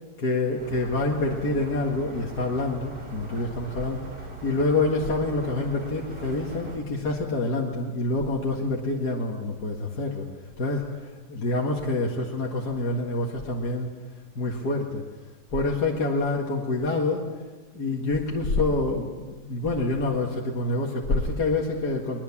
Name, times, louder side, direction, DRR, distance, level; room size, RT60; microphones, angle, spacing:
voice 1, 0.2-4.0 4.4-10.3 10.6-13.9 14.4-15.0 15.5-17.3 17.7-22.2, left 2 dB, 70° left, -1 dB, 2.5 m, -27 dB
sound 1, 0.6-6.8, right 2 dB, 85° right, 3.9 m, -40 dB
22.0 x 21.0 x 7.3 m, 1.3 s
omnidirectional pair, 1.8 m